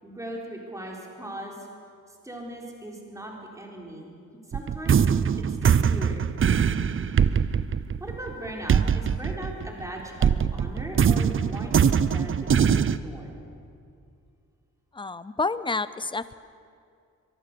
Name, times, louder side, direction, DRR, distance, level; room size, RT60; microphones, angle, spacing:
voice 1, 0.0-1.7 2.1-4.2 4.5-5.1 5.5-6.2 8.0-13.3, right 1 dB, 10° right, -1 dB, 4.1 m, -39 dB
sound 1, 4.5-9.9 10.2-13.0, right 7 dB, 40° right, 0.6 m, -22 dB
voice 2, 14.9-16.3, left 3 dB, 15° left, 15 dB, 0.6 m, -29 dB
24.0 x 23.0 x 6.9 m, 2.4 s
wide cardioid pair, 160°, 31 cm